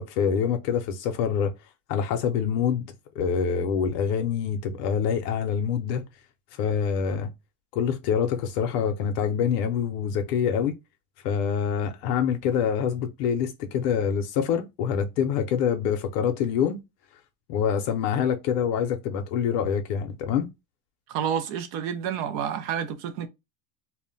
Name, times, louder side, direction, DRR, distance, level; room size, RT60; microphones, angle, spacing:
voice 1, 0.0-1.5 1.9-2.9 3.2-6.0 6.5-7.3 7.7-10.7 11.2-16.8 17.5-20.5, left 7 dB, 75° left, 0.6 m, -25 dB
voice 2, 21.1-23.3, right 8 dB, 50° right, 0.4 m, -29 dB
2.1 x 2.1 x 3.7 m
cardioid pair, 160°, 47 cm